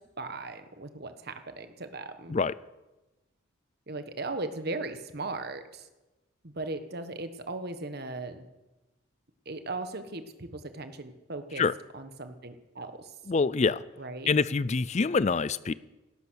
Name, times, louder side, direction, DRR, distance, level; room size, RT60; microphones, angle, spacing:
voice 1, 0.2-2.4 3.9-5.9 6.4-8.5 9.4-11.6 11.9-13.1 14.0-14.3, right 2 dB, 50° right, 8 dB, 1.4 m, -38 dB
voice 2, 13.3-13.8 14.3-15.7, left 4 dB, 35° left, 18 dB, 0.4 m, -25 dB
17.5 x 12.5 x 6.4 m, 1.1 s
head